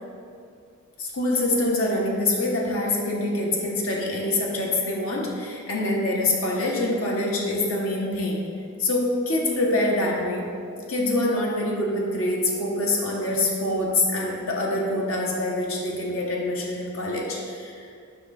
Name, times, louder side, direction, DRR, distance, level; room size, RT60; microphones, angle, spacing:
voice 1, 1.0-8.5 8.8-10.4 10.9-17.9, left 1 dB, 70° left, -2 dB, 1.2 m, -25 dB
8.0 x 3.1 x 5.8 m, 2.3 s
head